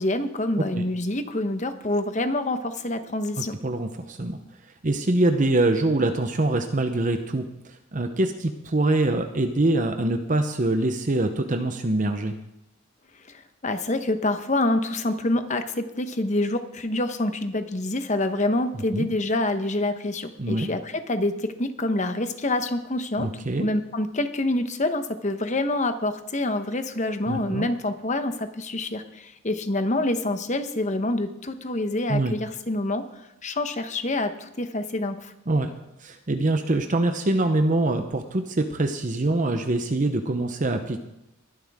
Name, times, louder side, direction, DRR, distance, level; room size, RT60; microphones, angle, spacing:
voice 1, 0.0-3.5 13.3-23.3 23.6-35.3, left 2 dB, 35° left, 8 dB, 1.1 m, -26 dB
voice 2, 3.4-4.4 4.8-12.3 18.9-19.1 20.4-20.7 23.2-23.7 27.3-27.7 32.1-32.3 35.5-35.7 36.0-41.0, right 2 dB, 40° right, 6 dB, 0.8 m, -24 dB
21.0 x 11.5 x 3.6 m, 0.88 s
head